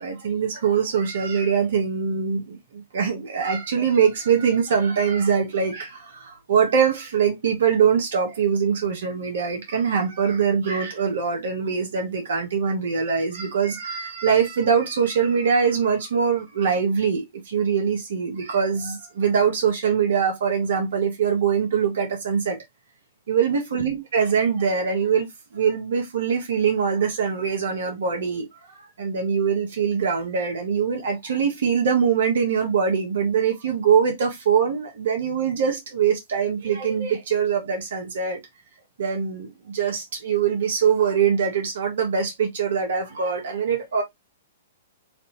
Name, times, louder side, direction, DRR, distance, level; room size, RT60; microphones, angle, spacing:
voice 1, 0.0-22.6 23.3-25.3 25.5-38.4 39.0-44.0, right 6 dB, 65° right, 1.1 m, -23 dB
3.2 x 2.7 x 3.1 m
figure-of-eight pair, 115°, 0 cm